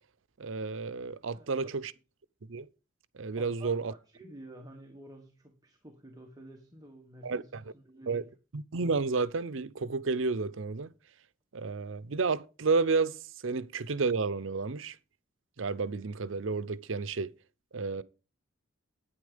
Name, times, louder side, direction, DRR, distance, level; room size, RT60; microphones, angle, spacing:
voice 1, 0.4-1.9 2.5-2.7 3.1-3.9 7.2-7.6 8.1-8.2 8.5-10.9 11.5-13.2 13.4-15.0 15.6-17.3 17.7-18.0, right 4 dB, 75° right, 0.7 m, -31 dB
voice 2, 1.3-1.8 3.3-8.3, right 1 dB, 20° right, 1.4 m, -51 dB
9.9 x 9.4 x 5.1 m
head